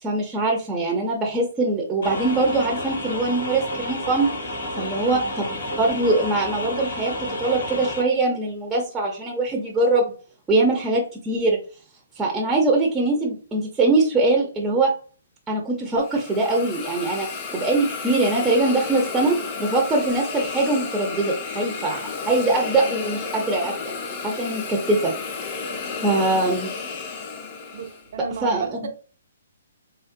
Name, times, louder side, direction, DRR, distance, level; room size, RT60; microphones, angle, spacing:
voice 1, 0.0-4.3 4.8-10.1 10.5-11.6 12.2-14.9 15.5-23.8 24.2-25.1 25.4-25.6 26.0-26.7 28.4-28.9, right 2 dB, 10° right, 0.5 m, -22 dB
sound 1, 2.0-8.0, left 1 dB, 70° left, 1.4 m, -31 dB
voice 2, 5.0-5.3 18.5-18.8 27.7-28.9, right 6 dB, 55° right, 0.5 m, -34 dB
Hiss, 15.9-28.1, left 5 dB, 35° left, 0.6 m, -32 dB
3.8 x 2.1 x 2.5 m
hypercardioid pair, 155°, 0 cm